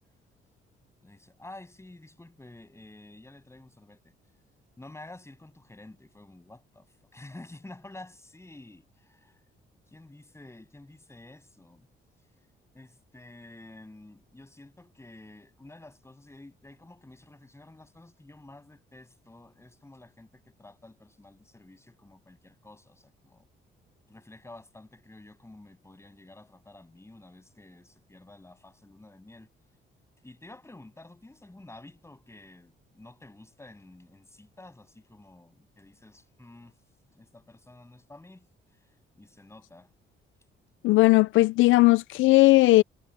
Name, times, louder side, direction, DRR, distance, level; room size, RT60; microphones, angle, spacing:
voice 1, 1.0-4.1 4.8-9.4 9.9-11.9 12.7-23.5 24.1-29.5 30.2-36.8 37.1-38.9 39.2-39.9, left 2 dB, 15° left, 7.8 m, -50 dB
voice 2, 40.8-42.8, left 19 dB, 85° left, 0.4 m, -18 dB
cardioid pair, 90°, 20 cm